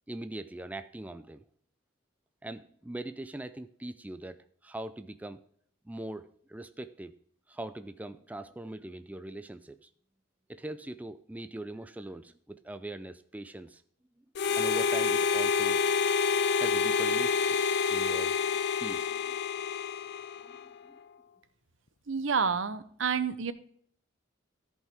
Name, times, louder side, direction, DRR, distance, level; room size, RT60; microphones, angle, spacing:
voice 1, 0.1-1.4 2.4-5.4 5.9-7.1 7.5-9.9 10.5-13.8 14.5-15.8 16.6-17.5 17.9-19.4 20.4-20.6 20.9-21.0, right 1 dB, 10° right, 11 dB, 0.3 m, -41 dB
Harmonica, 14.3-20.7, left 5 dB, 55° left, 0.4 m, -28 dB
voice 2, 22.1-23.5, right 6 dB, 70° right, 13 dB, 0.8 m, -29 dB
14.0 x 5.4 x 3.5 m, 0.62 s
head